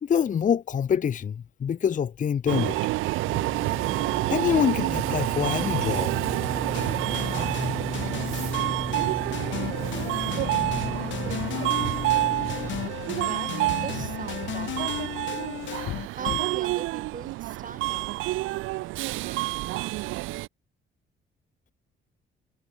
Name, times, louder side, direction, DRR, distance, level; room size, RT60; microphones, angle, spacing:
voice 1, 0.0-2.8 4.3-6.1, left 8 dB, 40° left, 0.7 m, -25 dB
Subway metro underground, 2.5-20.5, right 19 dB, 90° right, 0.5 m, -28 dB
sound 1, 3.3-12.9, left 1 dB, 5° left, 1.8 m, -35 dB
sound 2, 6.7-16.7, left 13 dB, 70° left, 0.9 m, -35 dB
voice 2, 12.3-14.9 16.1-18.1 19.2-19.7, right 6 dB, 40° right, 7.5 m, -42 dB
cardioid pair, 90°, 20 cm